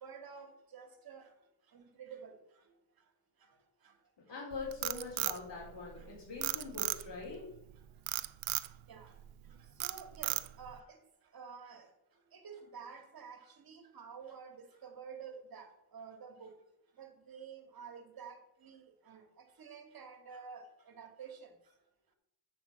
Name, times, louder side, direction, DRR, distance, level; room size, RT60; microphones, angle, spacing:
voice 1, 0.0-1.3 1.7-2.3 6.0-6.1 8.9-9.1 9.8-11.0 11.3-11.9 12.3-15.7 15.9-16.5 17.0-19.2 19.6-21.5, right 6 dB, 45° right, 5 dB, 2.0 m, -50 dB
voice 2, 4.3-7.5, left 4 dB, 60° left, -3 dB, 4.0 m, -43 dB
Frog, 4.5-6.0 6.4-7.3 8.1-8.7 9.2-9.5 9.8-10.7, right 16 dB, 75° right, 0.6 m, -35 dB
7.3 x 5.8 x 7.4 m, 0.82 s
cardioid pair, 105°, 48 cm